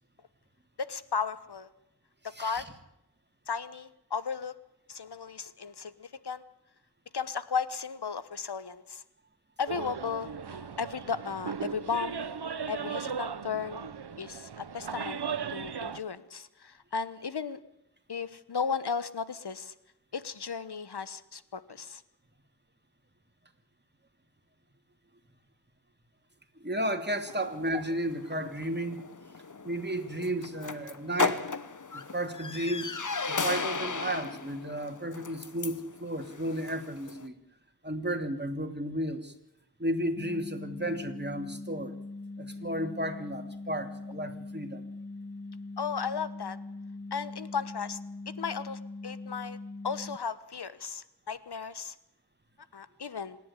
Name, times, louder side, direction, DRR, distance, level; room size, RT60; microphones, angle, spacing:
voice 1, 0.8-1.7 2.4-2.6 3.5-4.5 4.9-6.4 7.1-9.0 9.6-12.1 12.7-13.9 14.2-15.2 15.5-17.6 18.1-19.7 20.1-22.0 27.7-27.8 45.8-46.6 47.1-48.0 48.4-49.6 49.8-51.9 52.7-53.4, left 6 dB, 80° left, 14 dB, 1.2 m, -35 dB
sound 1, 9.7-16.0, right 6 dB, 85° right, 1.0 m, -37 dB
voice 2, 26.6-29.0 29.6-31.5 31.9-32.9 33.3-37.3 37.8-39.3 39.8-41.9 42.4-44.8, right 1 dB, 25° right, 6 dB, 2.7 m, -33 dB
sound 2, 27.2-37.3, left 4 dB, 50° left, 1.2 m, -36 dB
sound 3, 40.2-50.2, left 2 dB, 30° left, 1.0 m, -42 dB
26.0 x 11.0 x 9.8 m, 0.88 s
wide cardioid pair, 40°, 39 cm